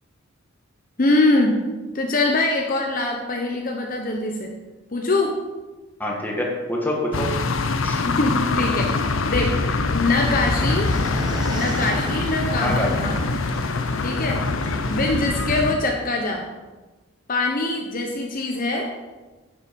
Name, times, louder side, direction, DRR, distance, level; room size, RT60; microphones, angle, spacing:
voice 1, 1.0-1.7 1.9-4.5 4.9-5.4 7.9-10.9 11.5-13.2 14.0-14.4 14.9-16.5 17.3-18.9, left 2 dB, 40° left, 1 dB, 0.9 m, -23 dB
voice 2, 6.0-7.4 7.8-8.0 12.5-13.0, left 1 dB, 10° left, -1 dB, 1.7 m, -26 dB
sound 1, 7.1-15.8, left 3 dB, 70° left, 0.7 m, -24 dB
sound 2, 10.1-15.1, equal, 20° right, 1.3 m, -31 dB
10.0 x 7.2 x 5.2 m, 1.2 s
head